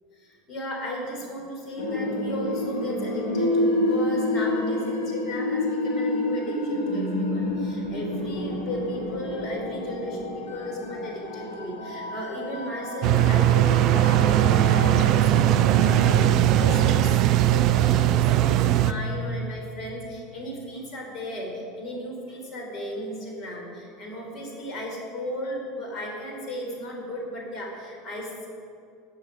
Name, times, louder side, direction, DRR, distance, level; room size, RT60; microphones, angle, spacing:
voice 1, 0.1-28.5, equal, 40° left, -1 dB, 3.4 m, -35 dB
sound 1, 1.8-17.3, left 1 dB, 65° left, 1.8 m, -29 dB
sound 2, 13.0-18.9, right 12 dB, 50° right, 0.6 m, -19 dB
19.0 x 6.6 x 5.3 m, 2.6 s
figure-of-eight pair, 75°, 0 cm